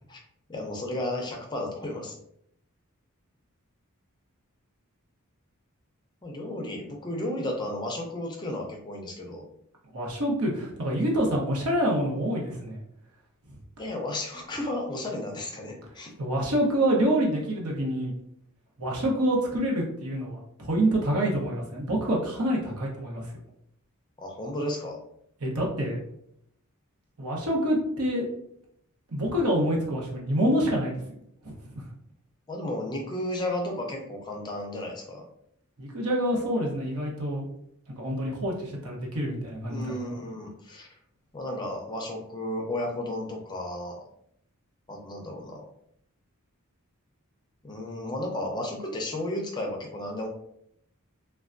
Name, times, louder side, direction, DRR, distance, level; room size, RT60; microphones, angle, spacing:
voice 1, 0.5-2.2 6.2-9.5 13.8-16.1 24.2-25.0 32.5-35.2 39.7-40.9 41.3-44.0 44.9-45.6 47.6-50.3, left 1 dB, 20° left, 1 dB, 0.5 m, -33 dB
voice 2, 9.9-12.8 16.2-18.1 18.8-23.3 25.4-26.0 27.2-28.2 29.1-31.0 31.4-31.8 35.8-37.4 38.0-40.2, right 1 dB, 80° right, -2 dB, 0.9 m, -27 dB
3.3 x 2.2 x 2.5 m, 0.72 s
head